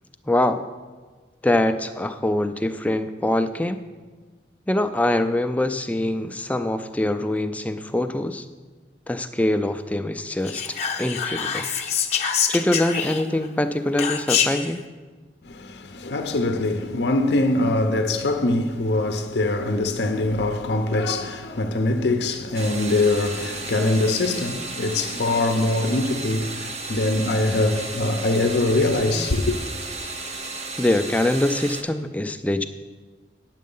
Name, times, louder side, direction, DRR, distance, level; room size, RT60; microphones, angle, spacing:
voice 1, 0.3-0.6 1.4-3.8 4.7-8.5 9.1-10.6 11.0-11.7 12.5-14.8 30.8-32.6, left 1 dB, 10° left, 0.3 m, -23 dB
Whispering, 10.4-13.4 14.0-14.7, left 7 dB, 35° left, 0.7 m, -25 dB
voice 2, 15.4-29.6, left 2 dB, 70° left, 0.6 m, -23 dB
sound 1, 22.5-31.8, right 3 dB, 35° right, 0.7 m, -34 dB
9.4 x 7.5 x 5.4 m
head